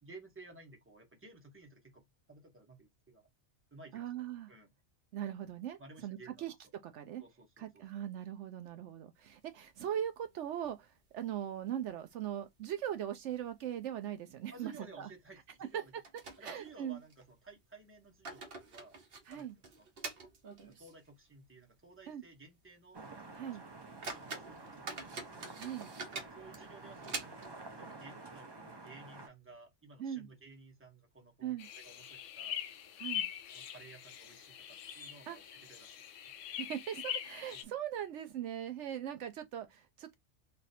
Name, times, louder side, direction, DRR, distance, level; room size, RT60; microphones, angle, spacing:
voice 1, 0.0-3.3 3.7-4.0 4.5-4.7 5.8-6.5 7.2-7.8 14.5-15.9 16.4-19.0 19.3-19.5 19.8-19.9 20.7-23.0 24.1-25.2 26.3-32.6 33.5-36.1 37.5-37.6, right 3 dB, 10° right, 1.0 m, -55 dB
voice 2, 3.9-4.5 5.1-7.2 7.6-15.1 16.4-17.0 19.3-19.6 22.1-22.2 23.3-23.6 25.6-25.9 30.0-30.3 31.4-31.7 33.0-33.3 35.3-35.4 36.6-40.1, right 10 dB, 75° right, 0.9 m, -40 dB
sound 1, 9.3-10.3 10.6-10.7 11.1-11.2 11.8-12.3 12.5-12.7 13.3-13.5 13.8-14.0 15.3-15.4 16.0-17.2 17.9-21.1 21.4-21.5 22.1-22.2 22.6-22.8 23.3-23.4 23.8-27.7, right 4 dB, 55° right, 1.1 m, -46 dB
sound 2, 22.9-29.3, right 3 dB, 25° right, 0.6 m, -50 dB
sound 3, 31.6-37.6, left 10 dB, 90° left, 0.9 m, -42 dB
3.2 x 2.6 x 4.1 m
omnidirectional pair, 1.2 m